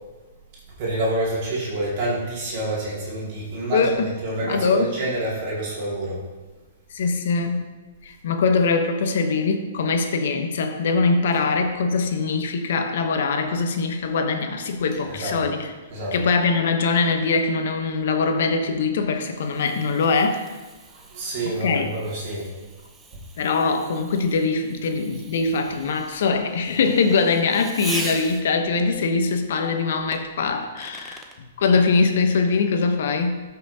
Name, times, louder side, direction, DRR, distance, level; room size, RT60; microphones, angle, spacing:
voice 1, 0.8-6.2 15.1-15.3 15.9-16.1 20.9-22.5, right 1 dB, 45° right, -5 dB, 2.5 m, -28 dB
voice 2, 4.4-4.9 6.9-7.7 8.0-15.7 16.1-20.5 21.4-21.9 23.4-33.4, left 4 dB, 65° left, 6 dB, 0.9 m, -22 dB
Fireworks, 18.8-28.7 30.1-31.4, right 3 dB, 15° right, 0.7 m, -41 dB
12.5 x 5.8 x 2.8 m, 1.3 s
hypercardioid pair, 140°, 0 cm